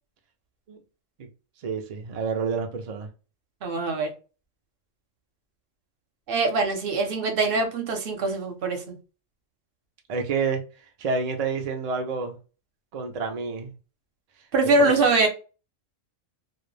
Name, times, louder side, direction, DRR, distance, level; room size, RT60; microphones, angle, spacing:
voice 1, 1.6-3.1 10.1-10.6 11.0-12.4 12.9-13.7 14.8-15.0, right 4 dB, 75° right, 0.3 m, -28 dB
voice 2, 3.6-4.1 6.3-9.0 14.5-15.3, right 3 dB, 55° right, 0.8 m, -23 dB
2.3 x 2.1 x 3.1 m
omnidirectional pair, 1.3 m